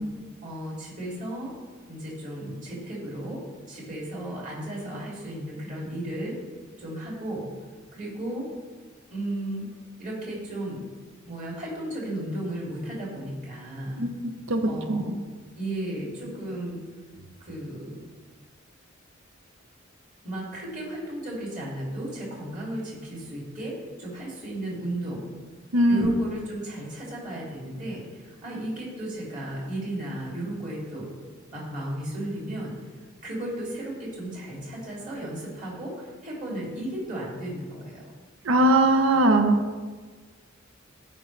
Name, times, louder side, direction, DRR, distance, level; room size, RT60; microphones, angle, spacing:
voice 1, 0.4-1.5 1.9-3.4 3.7-6.4 6.8-7.5 7.9-8.5 9.1-9.7 10.0-10.9 11.2-14.0 14.6-15.1 15.6-16.8 17.4-18.0 20.2-25.2 25.9-31.1 31.5-32.8 33.2-38.1, right 1 dB, 40° right, -4 dB, 2.7 m, -34 dB
voice 2, 14.5-15.0 25.7-26.1 38.5-39.6, right 1 dB, 90° right, 6 dB, 0.8 m, -20 dB
13.5 x 5.1 x 3.3 m, 1.4 s
head